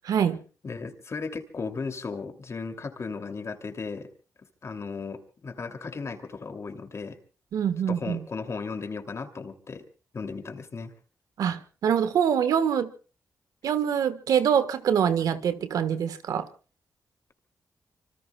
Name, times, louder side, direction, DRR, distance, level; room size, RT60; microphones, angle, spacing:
voice 1, 0.1-0.4 7.5-8.2 11.4-12.9 13.6-16.5, right 8 dB, 85° right, 1.3 m, -24 dB
voice 2, 0.6-4.1 4.6-7.2 7.9-9.8 10.1-10.9, left 4 dB, 50° left, 2.6 m, -36 dB
25.5 x 24.5 x 2.3 m
cardioid pair, 60°, 6 cm